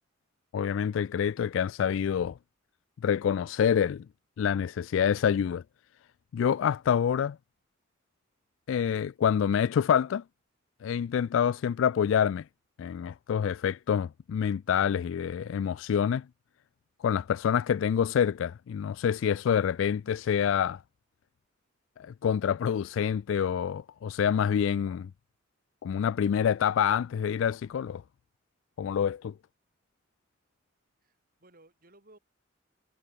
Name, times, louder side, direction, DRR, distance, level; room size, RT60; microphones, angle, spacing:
voice 1, 0.5-2.4 3.0-4.1 4.4-5.6 6.3-7.4 8.7-10.2 10.8-12.5 12.8-16.3 17.0-20.8 22.0-25.1 25.8-28.0 28.8-29.3, left 8 dB, 70° left, 0.3 m, -27 dB
voice 2, 31.0-32.2, right 2 dB, 45° right, 6.0 m, -58 dB
head